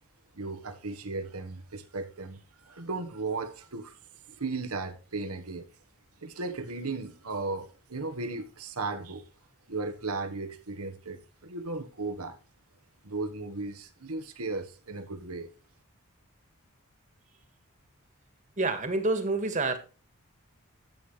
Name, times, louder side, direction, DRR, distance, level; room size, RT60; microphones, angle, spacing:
voice 1, 0.3-4.0 4.3-5.7 6.2-9.2 9.7-12.4 13.0-15.5, right 3 dB, 85° right, 1.4 m, -36 dB
voice 2, 18.6-19.8, right 2 dB, 35° right, 1.7 m, -27 dB
12.0 x 8.1 x 3.3 m
head